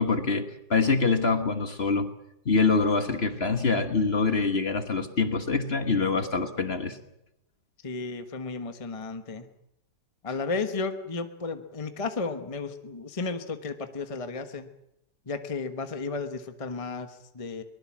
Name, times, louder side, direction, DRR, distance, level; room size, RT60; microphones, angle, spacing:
voice 1, 0.0-2.1 2.4-7.0, left 4 dB, 35° left, 8 dB, 1.4 m, -25 dB
voice 2, 7.8-9.5 10.2-14.7 15.3-17.6, left 4 dB, 20° left, 8 dB, 1.1 m, -33 dB
23.0 x 20.5 x 7.4 m, 0.83 s
omnidirectional pair, 1.9 m